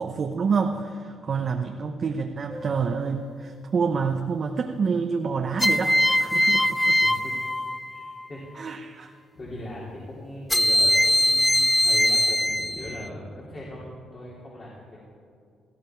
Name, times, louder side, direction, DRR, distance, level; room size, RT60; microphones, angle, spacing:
voice 1, 0.0-7.0 8.5-9.1, right 5 dB, 45° right, 3 dB, 0.9 m, -28 dB
sound 1, 2.5-3.1 5.6-8.3 10.5-13.1, left 1 dB, 10° left, 0.5 m, -22 dB
voice 2, 7.0-7.3 7.9-8.4 9.1-13.9 14.1-15.1, left 1 dB, 40° left, -5 dB, 3.6 m, -40 dB
18.5 x 15.0 x 4.6 m, 2.4 s
cardioid pair, 90°, 0 cm